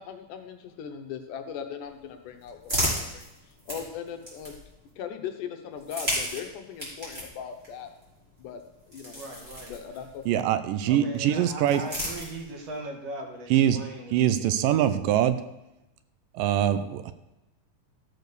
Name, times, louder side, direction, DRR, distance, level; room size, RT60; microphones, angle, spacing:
voice 1, 0.0-3.3 3.7-4.5 5.0-7.9 8.4-8.6 8.9-9.2 9.7-10.4, left 8 dB, 70° left, 6 dB, 2.3 m, -39 dB
sound 1, 1.9-4.9 5.7-10.3 11.3-12.8, equal, 15° right, 3.7 m, -35 dB
voice 2, 9.1-9.8 10.9-14.8, right 1 dB, 55° right, 2 dB, 2.4 m, -39 dB
voice 3, 10.3-11.8 13.5-13.8 14.1-15.4 16.3-17.1, right 11 dB, 85° right, 12 dB, 2.2 m, -23 dB
13.5 x 6.4 x 6.7 m, 0.95 s
omnidirectional pair, 4.0 m